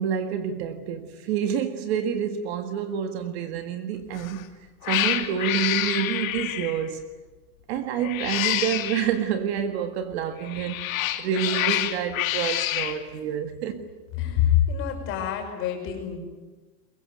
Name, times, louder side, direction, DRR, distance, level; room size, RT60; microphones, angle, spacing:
voice 1, 0.0-4.4 4.9-7.1 7.7-13.9, right 8 dB, 45° right, 1.7 m, -28 dB
Cat, 4.1-4.4 4.8-6.9 8.0-9.1 10.4-13.0, left 13 dB, 60° left, 2.5 m, -27 dB
voice 2, 14.2-16.2, left 10 dB, 25° left, 5.7 m, -25 dB
23.0 x 22.5 x 10.0 m
supercardioid pair, 175°, 45 cm